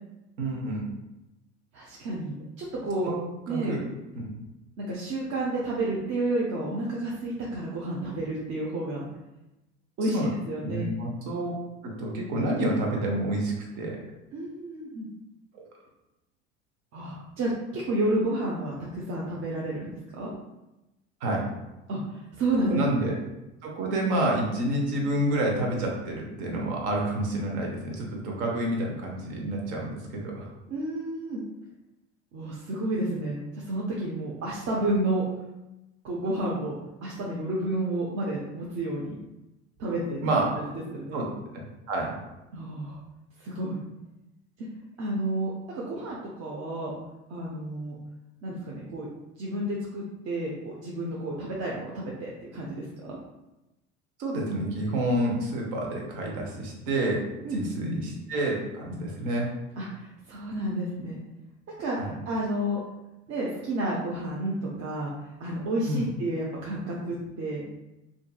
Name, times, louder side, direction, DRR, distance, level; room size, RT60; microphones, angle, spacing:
voice 1, 0.4-0.8 3.0-3.1 3.5-3.8 4.2-4.3 10.0-10.3 10.6-11.5 11.8-14.0 15.5-15.6 21.2-21.4 22.6-23.1 23.6-30.5 40.2-40.5 41.1-41.3 41.9-42.1 54.2-57.2 57.5-58.0 58.3-59.5 62.0-62.1 65.9-66.1, right 1 dB, 75° right, -1 dB, 0.8 m, -28 dB
voice 2, 1.7-3.1 3.5-3.7 4.8-9.1 10.0-10.8 14.3-15.1 16.9-20.3 21.9-22.8 30.7-31.4 32.3-35.2 36.0-39.2 39.8-40.5 40.9-41.2 42.5-43.0 43.4-43.8 44.6-44.7 45.0-46.9 47.3-48.0 48.4-49.1 49.4-53.2 57.4-58.0 58.9-59.0 59.8-61.2 61.7-62.8 63.3-65.1 65.4-67.8, right 1 dB, 45° right, -4 dB, 0.6 m, -31 dB
2.5 x 2.5 x 2.2 m, 0.97 s
hypercardioid pair, 75°, 36 cm